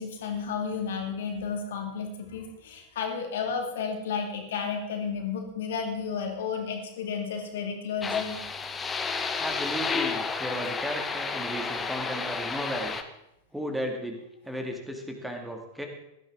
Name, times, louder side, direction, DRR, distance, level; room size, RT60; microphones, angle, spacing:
voice 1, 0.0-8.4, left 6 dB, 60° left, 3 dB, 2.4 m, -32 dB
sound 1, 8.0-13.0, left 5 dB, 15° left, 1.1 m, -31 dB
voice 2, 9.4-13.0 13.5-15.9, equal, 5° right, 3 dB, 2.1 m, -35 dB
17.5 x 12.5 x 3.7 m, 0.86 s
figure-of-eight pair, 90°, 0 cm